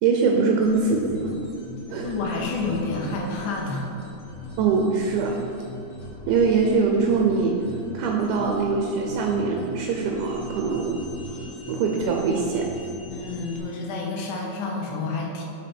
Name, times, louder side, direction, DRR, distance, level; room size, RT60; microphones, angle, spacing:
voice 1, 0.0-1.3 1.9-2.1 4.6-5.4 6.3-7.6 7.9-11.0 11.3-12.7, right 4 dB, 85° right, 1 dB, 2.1 m, -23 dB
sound 1, 0.6-13.6, equal, 50° left, 2.1 m, -40 dB
voice 2, 1.9-3.9 13.1-15.4, left 3 dB, 80° left, -1 dB, 2.4 m, -29 dB
6.1 x 5.2 x 4.3 m, 2.9 s
omnidirectional pair, 3.6 m